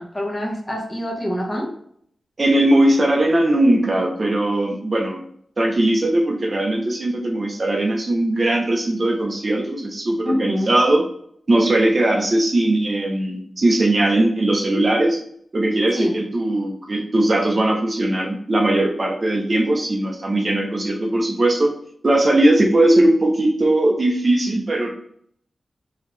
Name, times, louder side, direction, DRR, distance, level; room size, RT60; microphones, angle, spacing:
voice 1, 0.0-1.7 10.2-10.7 15.9-16.1, equal, 15° left, -1 dB, 0.9 m, -25 dB
voice 2, 2.4-5.2 5.6-11.0 11.5-15.2 15.5-21.7 22.0-24.9, right 1 dB, 35° right, 0 dB, 0.8 m, -19 dB
3.9 x 3.1 x 3.2 m, 0.66 s
wide cardioid pair, 175°, 0 cm